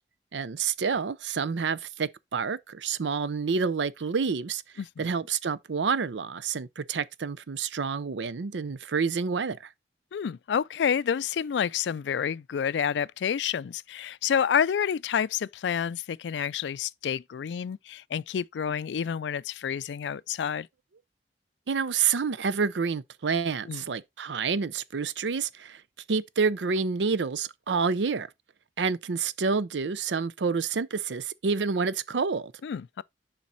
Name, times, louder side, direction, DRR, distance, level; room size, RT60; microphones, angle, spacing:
voice 1, 0.3-4.6 5.0-9.7 21.7-25.8 26.1-28.3 28.8-32.5, right 5 dB, 90° right, 0.6 m, -28 dB
voice 2, 10.1-20.7 23.7-23.8 32.6-33.0, left 8 dB, 75° left, 0.3 m, -29 dB
7.3 x 5.2 x 4.0 m
head